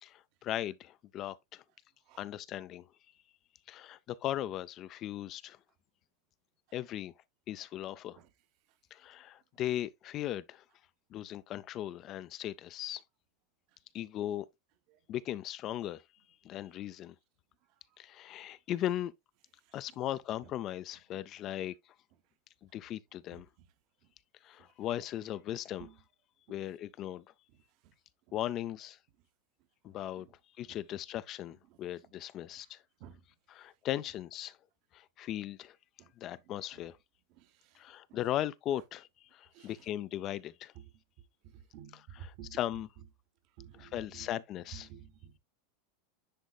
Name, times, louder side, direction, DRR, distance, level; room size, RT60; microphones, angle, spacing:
voice 1, 0.0-1.6 2.2-2.9 3.7-5.6 6.7-7.1 7.5-8.2 8.9-10.6 11.1-13.0 13.9-14.5 15.1-16.0 16.4-17.1 18.0-19.1 19.7-21.7 22.7-23.5 24.4-25.9 26.5-27.2 28.3-29.0 29.8-30.3 30.6-32.8 33.5-34.6 34.9-35.8 36.2-37.0 37.7-40.7 41.9-42.9 43.8-44.9, left 12 dB, 35° left, 0.3 m, -38 dB
voice 2, 29.9-30.3 30.7-30.8 31.7-31.8 33.0-33.2 36.0-36.1 36.7-36.8 37.3-37.8 39.5-39.7 40.8-40.9 41.5-42.6 43.6-44.3 44.7-45.4, right 9 dB, 45° right, 0.8 m, -51 dB
10.0 x 4.1 x 2.3 m
supercardioid pair, 160°, 0 cm